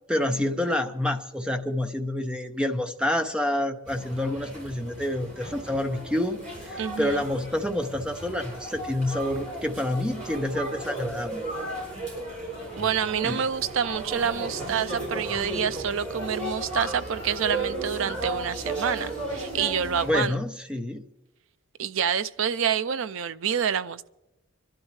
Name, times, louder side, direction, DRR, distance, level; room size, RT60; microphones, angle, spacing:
voice 1, 0.1-11.4 13.2-13.4 20.0-21.0, left 1 dB, 5° right, 6 dB, 0.7 m, -28 dB
sound 1, 3.8-20.2, right 2 dB, 35° right, 7.3 m, -35 dB
voice 2, 6.8-7.2 12.8-20.4 21.8-24.1, right 7 dB, 65° right, 14 dB, 0.5 m, -27 dB
25.0 x 12.0 x 3.2 m, 0.93 s
head